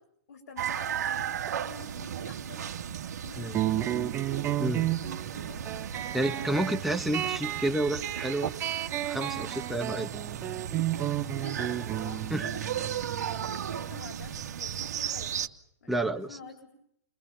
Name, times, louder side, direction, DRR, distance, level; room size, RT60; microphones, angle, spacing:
voice 1, 0.3-0.9 1.5-2.7 3.2-4.0 5.3-5.6 5.9-6.7 11.4-13.1 13.5-15.4 15.8-16.7, left 4 dB, 75° left, 3 dB, 7.7 m, -48 dB
sound 1, 0.6-15.5, right 9 dB, 70° right, 2.4 m, -35 dB
sound 2, 3.5-14.7, right 13 dB, 20° right, 1.2 m, -33 dB
voice 2, 6.1-8.5 9.1-10.1 12.3-12.5 15.9-16.3, right 1 dB, ahead, 3 dB, 1.9 m, -30 dB
30.0 x 21.5 x 7.4 m, 0.73 s
hypercardioid pair, 145°, 9 cm